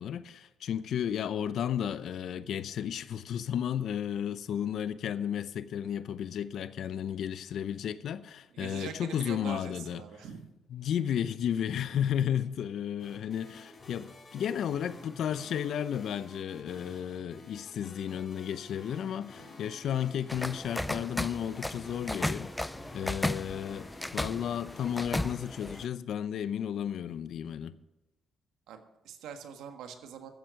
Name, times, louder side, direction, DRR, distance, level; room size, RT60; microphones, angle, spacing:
voice 1, 0.0-10.0 10.7-27.7, left 9 dB, 70° left, 0.7 m, -33 dB
voice 2, 8.5-10.5 28.7-30.3, right 7 dB, 85° right, 1.5 m, -43 dB
sound 1, 13.0-24.9, left 2 dB, 35° left, 4.7 m, -51 dB
sound 2, 20.3-25.9, left 1 dB, 10° left, 0.4 m, -35 dB
14.5 x 7.7 x 6.4 m
cardioid pair, 90°, 0 cm